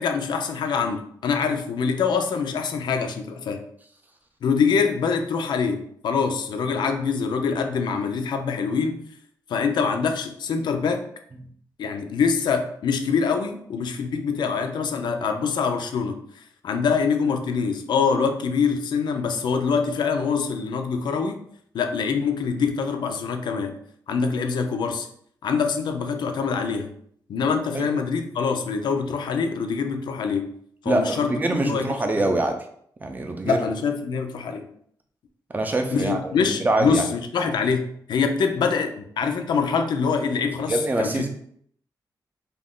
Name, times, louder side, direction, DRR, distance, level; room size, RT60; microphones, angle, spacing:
voice 1, 0.0-3.6 4.4-9.0 9.5-11.0 11.8-21.4 21.7-23.8 24.1-25.1 25.4-26.9 27.3-30.5 30.8-32.4 33.4-34.7 35.9-41.3, left 5 dB, 90° left, 5 dB, 0.4 m, -24 dB
voice 2, 30.9-32.6 33.0-33.7 35.5-37.0 40.7-41.3, right 2 dB, 25° right, 4 dB, 0.4 m, -24 dB
2.4 x 2.3 x 3.5 m, 0.66 s
wide cardioid pair, 135°, 7 cm